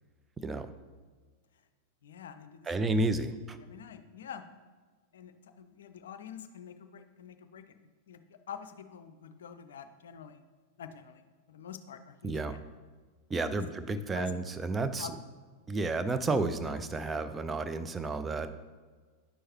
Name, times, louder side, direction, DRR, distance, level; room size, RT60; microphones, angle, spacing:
voice 1, 0.4-0.7 2.7-3.6 12.2-12.5 13.3-15.1 15.7-18.5, right 3 dB, 15° right, 10 dB, 0.5 m, -31 dB
voice 2, 2.0-4.4 5.1-7.7 8.1-10.4 10.8-12.6 13.3-13.8 14.1-14.4 15.0-15.1, left 8 dB, 60° left, 10 dB, 0.5 m, -47 dB
10.0 x 6.4 x 3.0 m, 1.5 s
figure-of-eight pair, 90°, 0 cm